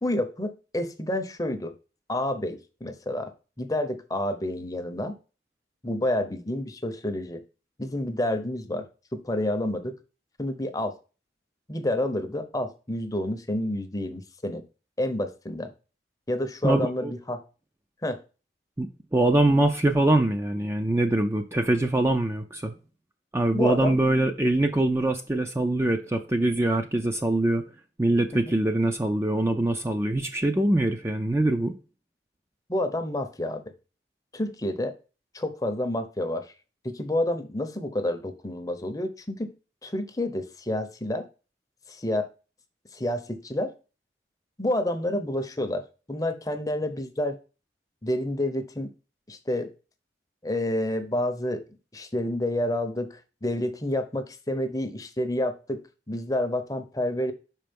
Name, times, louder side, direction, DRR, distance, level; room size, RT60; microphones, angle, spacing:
voice 1, 0.0-1.7 2.1-3.3 3.6-5.2 5.8-7.4 7.8-8.9 9.1-10.0 10.4-11.0 11.7-14.6 15.0-15.7 16.3-17.4 18.0-18.2 23.5-24.0 28.3-28.4 32.7-33.6 34.3-34.9 35.3-36.5 36.8-39.5 39.8-41.3 41.9-42.3 42.9-43.7 44.6-45.8 46.1-47.4 48.0-48.9 49.3-49.7 50.4-51.6 51.9-55.8 56.1-57.3, left 1 dB, 20° left, 0.7 m, -29 dB
voice 2, 16.6-17.1 18.8-22.8 23.3-27.6 28.0-31.7, right 1 dB, 15° right, 0.4 m, -23 dB
6.0 x 4.5 x 5.2 m
head